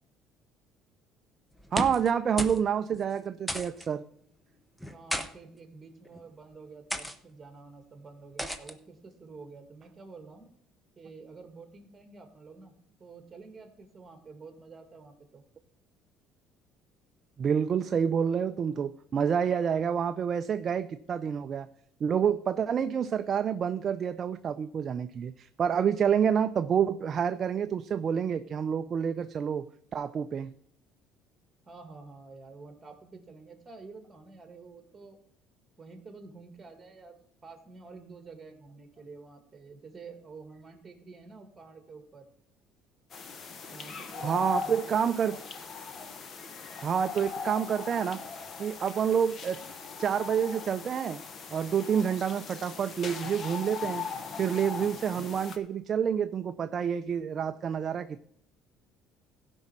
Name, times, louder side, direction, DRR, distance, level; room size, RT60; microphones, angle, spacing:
sound 1, 1.6-2.1 2.4-2.6 2.9-3.0 3.5-3.9 4.8-5.3 6.0-6.3 6.9-7.2 8.4-8.7, equal, 5° left, 0.8 m, -34 dB
voice 1, 1.7-4.0 17.4-21.7 22.0-29.7 29.9-30.5 44.2-45.4 46.8-48.2 48.6-49.6 50.0-51.2 51.5-54.1 54.4-58.2, right 7 dB, 35° right, 10 dB, 0.4 m, -28 dB
voice 2, 4.9-10.5 11.0-12.7 13.0-15.4 31.6-35.2 35.8-42.3 43.7-45.4, right 4 dB, 20° right, 7 dB, 2.0 m, -49 dB
sound 2, 43.1-55.6, left 5 dB, 40° left, 1.1 m, -40 dB
16.0 x 5.4 x 6.1 m, 0.65 s
cardioid pair, 135°, 0 cm